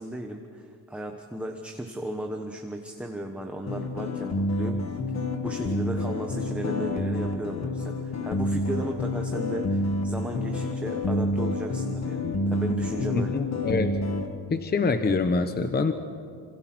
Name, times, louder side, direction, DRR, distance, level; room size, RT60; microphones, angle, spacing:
voice 1, 0.0-5.0 5.4-13.4, right 1 dB, 5° right, 3 dB, 1.2 m, -35 dB
sound 1, 3.7-14.3, left 2 dB, 40° left, 1.8 m, -28 dB
voice 2, 13.1-14.0 14.5-15.9, left 4 dB, 25° left, 8 dB, 1.0 m, -25 dB
27.0 x 27.0 x 6.1 m, 2.3 s
wide cardioid pair, 170°, 38 cm